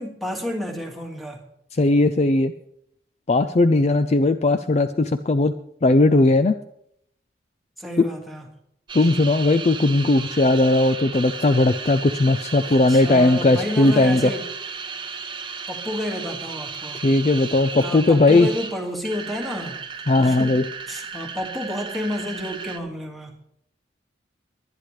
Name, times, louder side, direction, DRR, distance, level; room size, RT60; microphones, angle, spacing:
voice 1, 0.0-1.4 7.8-8.5 12.6-14.4 15.7-17.0 17.8-19.8 20.2-20.6 20.9-23.4, left 1 dB, ahead, 1 dB, 1.9 m, -30 dB
voice 2, 1.8-2.5 3.3-5.5 5.8-6.5 8.0-8.1 8.9-14.3 17.0-18.5 20.1-20.6, left 2 dB, 35° left, 10 dB, 0.4 m, -18 dB
sound 1, 8.9-22.8, right 5 dB, 25° right, 0.7 m, -35 dB
22.0 x 10.0 x 3.2 m, 0.74 s
head